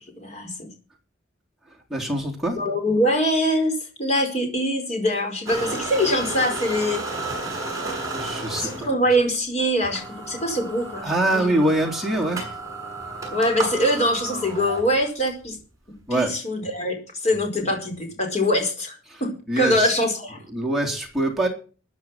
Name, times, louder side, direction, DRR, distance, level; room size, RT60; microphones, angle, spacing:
voice 1, 0.2-0.7 2.6-3.7 4.0-7.0 8.6-11.6 13.3-15.6 16.1-20.4, equal, 35° left, 3 dB, 4.9 m, -23 dB
voice 2, 1.9-2.6 7.5-7.6 8.1-8.9 11.0-12.5 16.1-16.3 19.1-19.2 19.5-19.9 20.5-21.5, right 1 dB, ahead, -2 dB, 3.9 m, -24 dB
sound 1, 5.5-8.9 9.3-9.4 9.8-15.3, right 3 dB, 20° right, 7.0 m, -32 dB
15.0 x 9.8 x 6.0 m, 0.37 s
head